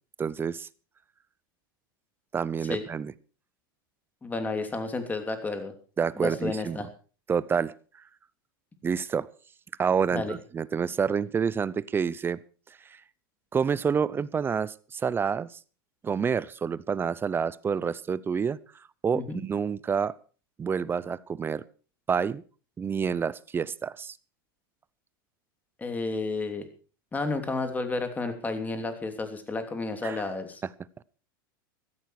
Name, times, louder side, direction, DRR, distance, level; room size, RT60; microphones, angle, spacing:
voice 1, 0.2-0.7 2.3-3.1 6.0-6.8 7.3-7.7 8.8-9.3 9.8-12.4 12.9-13.0 13.5-15.5 16.0-18.6 19.0-20.1 20.6-21.6 22.1-22.4 22.8-24.2 30.0-30.2, right 6 dB, 20° right, 20 dB, 0.6 m, -28 dB
voice 2, 4.2-5.7 6.1-6.9 10.1-10.3 19.1-19.4 25.8-26.7 27.1-30.6, left 3 dB, 15° left, 7 dB, 3.0 m, -31 dB
15.0 x 13.5 x 4.8 m, 0.39 s
supercardioid pair, 125°, 12 cm